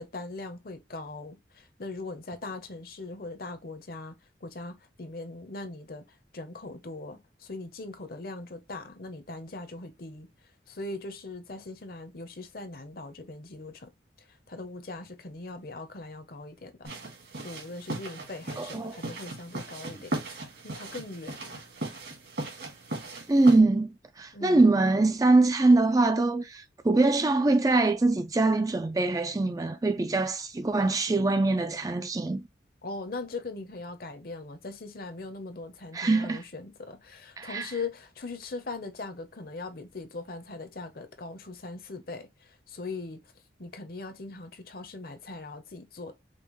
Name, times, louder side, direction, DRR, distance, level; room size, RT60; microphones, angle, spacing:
voice 1, 0.0-10.3 10.7-13.9 14.3-16.9 17.4-21.6 24.3-24.7 32.8-43.3 43.6-46.1, left 3 dB, 55° left, 0.8 m, -40 dB
sound 1, 16.8-23.6, right 2 dB, 70° right, 1.9 m, -38 dB
voice 2, 18.6-19.0 23.3-32.5 35.9-36.4 37.4-37.7, right 2 dB, 20° right, 0.3 m, -23 dB
5.3 x 2.4 x 3.1 m
head